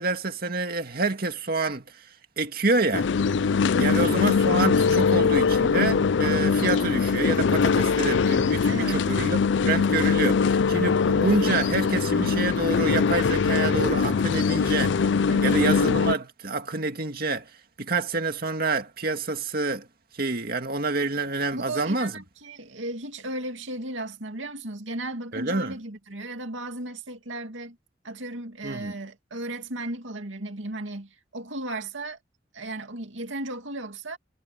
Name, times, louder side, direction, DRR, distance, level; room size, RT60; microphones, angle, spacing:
voice 1, 0.0-2.1 2.4-3.1 3.8-17.5 17.8-19.9 20.1-22.1 25.3-25.8 28.6-29.0, right 3 dB, 50° right, 2.2 m, -27 dB
sound 1, 2.9-16.1, left 5 dB, 70° left, 0.4 m, -22 dB
voice 2, 3.7-4.2 8.7-9.1 15.3-15.6 21.5-27.8 28.0-32.2 32.5-34.2, right 1 dB, 90° right, 2.5 m, -35 dB
head